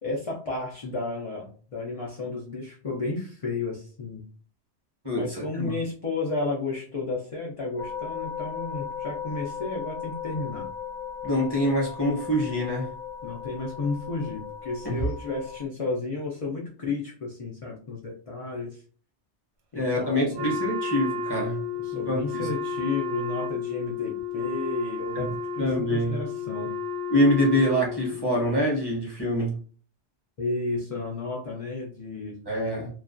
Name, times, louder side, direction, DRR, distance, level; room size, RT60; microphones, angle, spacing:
voice 1, 0.0-4.2 5.1-10.7 13.2-18.8 19.7-20.5 21.8-26.7 28.1-28.3 30.4-32.4, left 3 dB, 65° left, -3 dB, 0.3 m, -32 dB
voice 2, 5.0-5.7 11.2-12.9 14.8-15.0 19.7-21.6 22.1-22.5 25.1-26.2 27.1-29.6 32.5-32.9, equal, 25° right, -4 dB, 0.7 m, -25 dB
sound 1, 7.8-15.7, left 7 dB, 80° left, 0.9 m, -37 dB
Wind instrument woodwind instrument, 20.3-28.3, left 4 dB, 70° right, 0.8 m, -32 dB
2.3 x 2.2 x 2.4 m, 0.43 s
omnidirectional pair, 1.2 m